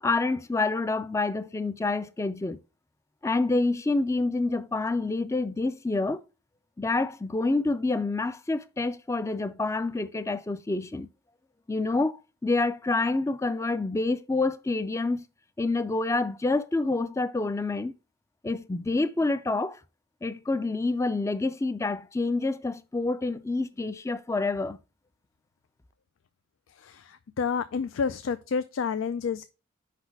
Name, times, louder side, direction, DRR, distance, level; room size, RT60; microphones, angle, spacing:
voice 1, 0.0-2.6 3.2-6.2 6.8-11.1 11.7-12.2 12.4-15.2 15.6-17.9 18.4-19.8 20.2-24.8, left 3 dB, 15° left, 0.3 m, -27 dB
voice 2, 26.8-29.4, left 6 dB, 85° left, 0.4 m, -30 dB
5.2 x 4.2 x 5.9 m
head